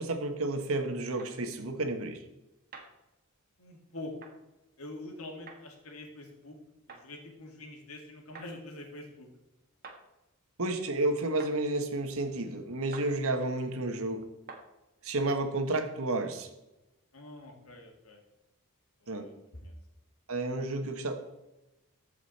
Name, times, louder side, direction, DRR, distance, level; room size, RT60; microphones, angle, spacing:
voice 1, 0.0-2.2 10.6-14.2 15.0-16.5 19.1-19.3 20.3-21.1, right 2 dB, 65° right, 7 dB, 1.2 m, -31 dB
sound 1, 1.2-1.3 2.7-2.9 4.2-4.4 5.5-5.6 6.9-7.0 8.3-8.5 9.8-10.0 11.4-11.6 12.9-13.1 14.5-14.7, right 4 dB, 45° right, 1.6 m, -46 dB
voice 2, 3.6-4.1 4.8-6.6 6.9-9.3 17.1-18.2 19.0-19.2 19.5-19.8, left 2 dB, 70° left, 2 dB, 2.1 m, -45 dB
14.0 x 5.1 x 4.2 m, 0.96 s
head